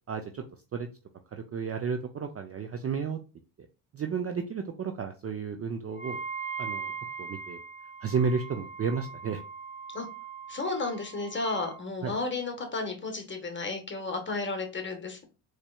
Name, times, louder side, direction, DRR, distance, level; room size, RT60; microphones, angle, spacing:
voice 1, 0.1-0.4 0.7-0.9 1.3-3.2 3.9-6.2 6.6-6.9 7.2-7.6 8.0-9.4 12.0-12.1, right 5 dB, 30° right, 6 dB, 0.4 m, -32 dB
Wind instrument woodwind instrument, 5.9-11.8, right 5 dB, 15° right, 1.1 m, -40 dB
voice 2, 10.5-15.2, left 3 dB, 20° left, 5 dB, 1.2 m, -33 dB
4.1 x 3.2 x 2.2 m, 0.32 s
cardioid pair, 85°, 50 cm